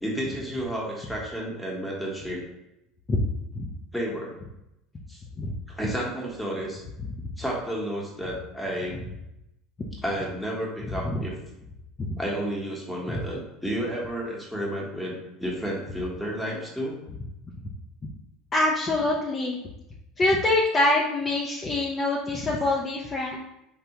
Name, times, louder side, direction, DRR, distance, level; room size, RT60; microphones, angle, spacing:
voice 1, 0.0-2.4 3.9-4.3 5.1-5.2 5.7-6.8 7.4-9.0 10.0-11.3 12.2-16.9, equal, 5° left, -3 dB, 1.0 m, -31 dB
voice 2, 18.5-19.6 20.2-23.4, left 2 dB, 30° left, -3 dB, 0.5 m, -24 dB
3.3 x 2.2 x 2.9 m, 0.87 s
supercardioid pair, 90°, 0 cm